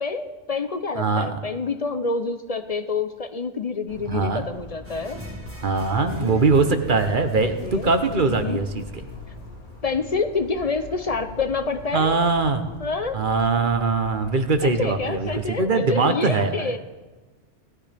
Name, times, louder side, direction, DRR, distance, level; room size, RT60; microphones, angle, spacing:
voice 1, 0.0-5.2 6.0-6.4 7.4-8.6 9.8-12.2 12.8-13.2 14.6-16.8, left 4 dB, 40° left, 9 dB, 0.6 m, -28 dB
voice 2, 1.0-1.4 4.1-4.5 5.6-8.8 11.9-12.6 13.1-16.7, right 4 dB, 45° right, 8 dB, 1.0 m, -22 dB
sound 1, 3.9-15.4, left 3 dB, 90° left, 2.7 m, -42 dB
sound 2, 4.8-9.9, left 2 dB, 10° right, 1.6 m, -40 dB
18.0 x 13.5 x 3.4 m, 1.2 s
omnidirectional pair, 1.2 m